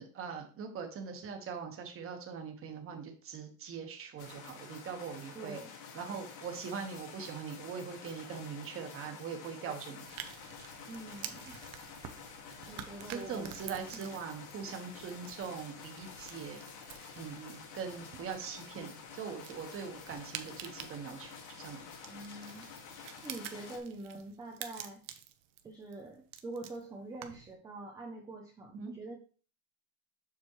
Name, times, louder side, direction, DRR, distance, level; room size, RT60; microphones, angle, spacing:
voice 1, 0.0-5.6 5.9-10.1 13.1-16.6 17.2-21.9 28.7-28.9, right 6 dB, 25° right, 4 dB, 1.2 m, -42 dB
sound 1, 4.2-23.8, left 6 dB, 70° left, 1.9 m, -49 dB
voice 2, 5.3-5.7 10.9-11.6 12.7-13.5 13.9-14.1 22.1-22.7 23.2-25.0 25.6-29.2, right 2 dB, 10° right, 1 dB, 0.3 m, -45 dB
sound 2, 10.0-27.6, right 10 dB, 45° right, 0.8 m, -49 dB
7.4 x 6.1 x 3.0 m, 0.38 s
cardioid pair, 165°, 47 cm